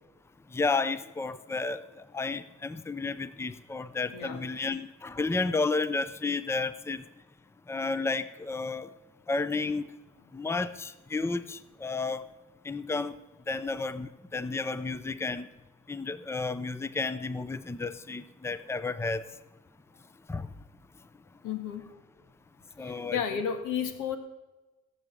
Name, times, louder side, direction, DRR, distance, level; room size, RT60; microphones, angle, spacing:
voice 1, 0.5-7.0 7.7-8.9 9.3-9.9 10.3-12.2 12.6-13.1 13.5-15.5 15.9-19.2 20.3-20.5 22.8-23.2, left 3 dB, 10° left, 15 dB, 0.6 m, -32 dB
voice 2, 21.4-21.9 22.8-24.2, left 7 dB, 85° left, 7 dB, 1.9 m, -32 dB
16.5 x 7.1 x 7.7 m, 1.1 s
cardioid pair, 90°, 30 cm